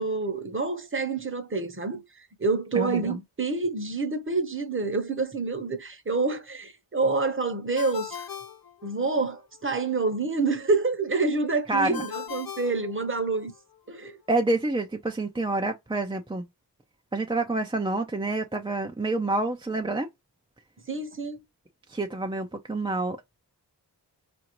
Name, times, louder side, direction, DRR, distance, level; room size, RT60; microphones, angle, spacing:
voice 1, 0.0-2.0 2.4-8.2 8.8-13.5 13.9-14.2 20.9-21.4, right 3 dB, 30° right, 0.8 m, -27 dB
voice 2, 2.7-3.2 11.7-12.0 14.3-16.4 17.1-20.1 21.9-23.2, right 2 dB, 10° right, 0.4 m, -28 dB
Ringtone, 7.8-9.4 11.9-13.6, left 7 dB, 55° left, 0.6 m, -39 dB
4.8 x 2.6 x 2.9 m
wide cardioid pair, 75°, 43 cm